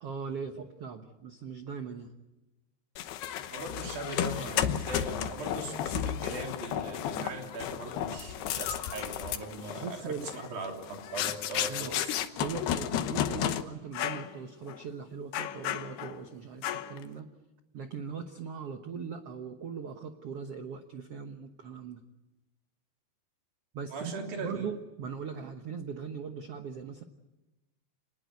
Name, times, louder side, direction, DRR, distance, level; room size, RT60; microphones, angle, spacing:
voice 1, 0.0-2.1 9.8-10.3 11.7-11.9 12.4-17.3 17.7-22.0 23.7-27.0, right 6 dB, 85° right, 6 dB, 1.3 m, -40 dB
sound 1, 3.0-13.6 13.9-14.3 14.7-14.8 15.3-16.2 16.6-17.0, left 11 dB, 80° left, 3.1 m, -33 dB
voice 2, 3.5-12.2 23.9-24.7, right 3 dB, 65° right, 2 dB, 5.0 m, -39 dB
26.0 x 20.0 x 9.5 m, 1.1 s
omnidirectional pair, 4.6 m